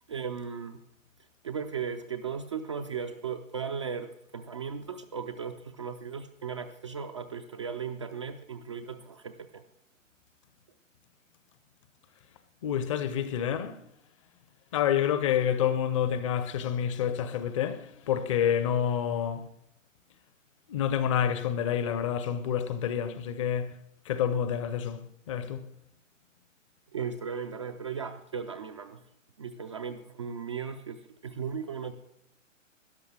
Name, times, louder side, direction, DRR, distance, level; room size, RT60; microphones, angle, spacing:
voice 1, 0.1-0.8 1.4-9.6 26.9-29.0 29.4-31.9, right 6 dB, 25° right, 0.4 m, -36 dB
voice 2, 12.6-13.8 14.7-19.5 20.7-23.7 24.1-25.7, left 9 dB, 25° left, 0.7 m, -28 dB
13.0 x 10.5 x 6.3 m
figure-of-eight pair, 125°, 39 cm